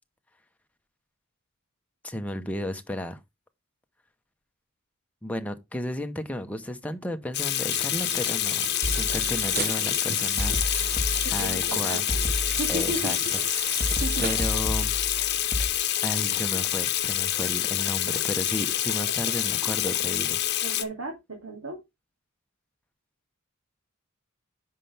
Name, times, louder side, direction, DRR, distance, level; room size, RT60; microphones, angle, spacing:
voice 1, 2.0-3.2 5.2-11.0 11.3-12.1 12.7-13.2 13.5-13.9 14.2-14.9 16.0-20.4, left 1 dB, 5° left, 0.9 m, -33 dB
Water tap faucet / Sink (filling or washing), 7.3-20.8, left 12 dB, 55° left, 0.9 m, -27 dB
sound 1, 7.7-14.5, right 7 dB, 50° right, 0.9 m, -36 dB
sound 2, 8.8-9.7 10.4-11.7 12.1-13.2 13.8-15.7, left 1 dB, 15° right, 1.7 m, -31 dB
voice 2, 11.2-13.2 14.0-14.3 20.2-20.3 20.6-21.8, right 1 dB, 75° right, 2.4 m, -35 dB
9.8 x 5.6 x 3.4 m
head